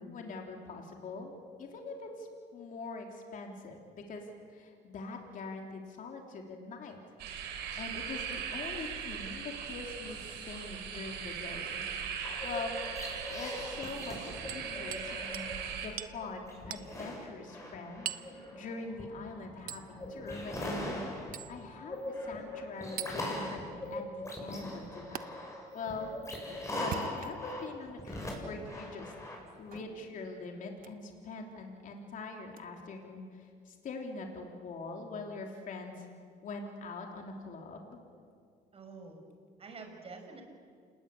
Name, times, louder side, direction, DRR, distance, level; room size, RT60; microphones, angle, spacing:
voice 1, 0.0-1.3 1.6-7.0 7.7-11.8 12.4-25.3 25.7-26.1 26.8-29.1 29.6-36.1 36.4-38.0, left 3 dB, 50° left, 2 dB, 3.5 m, -43 dB
sound 1, 7.2-15.9, right 7 dB, 80° right, 4.4 m, -39 dB
sound 2, 12.2-15.7 16.1-29.8, left 1 dB, 15° left, 7.3 m, -41 dB
Hammer, 14.5-15.1 15.3-15.5 16.0-16.2 16.7-16.9 18.1-18.3 19.7-19.9 21.3-21.5 23.0-23.2 25.2-25.3 26.8-27.5 28.3-28.4 29.7-29.9 30.8-31.0 32.5-32.6, right 10 dB, 55° right, 1.1 m, -41 dB
voice 2, 38.7-39.2 39.6-40.4, right 4 dB, 35° right, 4 dB, 5.7 m, -47 dB
28.5 x 20.0 x 8.6 m, 2.2 s
cardioid pair, 110°, 17 cm